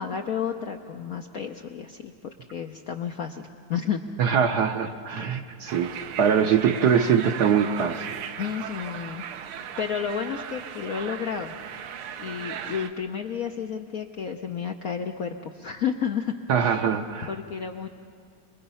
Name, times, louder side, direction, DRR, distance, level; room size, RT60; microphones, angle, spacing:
voice 1, 0.0-4.0 5.2-5.3 8.4-9.3 9.6-11.5 12.2-16.9 17.3-17.9, left 7 dB, 65° left, 4 dB, 0.9 m, -31 dB
voice 2, 4.2-8.2 16.5-17.3, right 7 dB, 60° right, 6 dB, 1.1 m, -23 dB
sound 1, 5.7-12.9, right 8 dB, 85° right, 1.7 m, -37 dB
25.5 x 21.0 x 5.6 m, 2.2 s
omnidirectional pair, 2.3 m